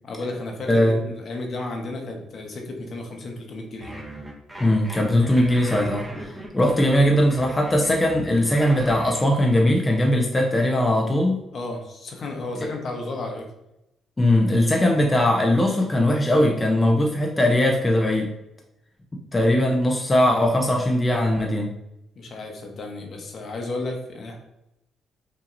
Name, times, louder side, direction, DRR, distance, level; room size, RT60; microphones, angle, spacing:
voice 1, 0.0-3.9 11.5-13.5 19.6-19.7 22.1-24.4, left 2 dB, 55° left, 2 dB, 1.0 m, -33 dB
voice 2, 0.7-1.0 4.6-11.4 12.6-12.7 14.2-18.3 19.3-21.7, left 1 dB, 20° left, 1 dB, 0.6 m, -20 dB
sound 1, 3.8-9.3, right 1 dB, 15° right, 1.1 m, -37 dB
5.6 x 2.8 x 2.6 m, 0.87 s
cardioid pair, 90°, 0 cm